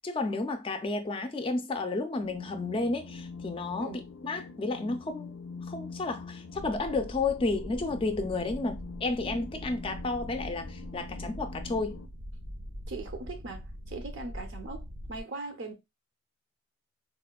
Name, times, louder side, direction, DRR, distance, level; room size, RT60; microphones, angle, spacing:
voice 1, 0.0-3.9 4.2-5.3 5.7-12.0, left 3 dB, 25° left, 0.3 m, -32 dB
sound 1, 2.2-12.1, left 3 dB, 85° left, 0.4 m, -44 dB
sound 2, 6.5-15.2, equal, 85° right, 1.2 m, -42 dB
voice 2, 12.9-15.7, right 3 dB, 70° right, 0.6 m, -40 dB
4.1 x 2.2 x 2.3 m
head